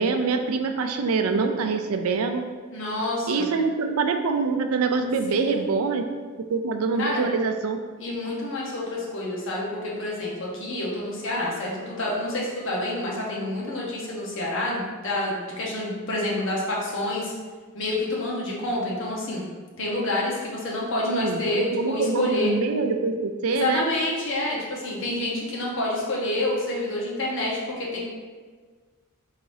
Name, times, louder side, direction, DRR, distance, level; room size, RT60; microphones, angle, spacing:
voice 1, 0.0-2.5 3.3-6.0 6.5-7.8 21.0-23.9, right 4 dB, 85° right, 6 dB, 0.4 m, -25 dB
voice 2, 2.7-3.5 5.5-5.7 7.0-7.2 8.0-17.3 17.7-19.5 19.8-22.5 23.5-28.0, left 1 dB, 65° left, -4 dB, 1.1 m, -28 dB
4.7 x 3.9 x 2.7 m, 1.5 s
head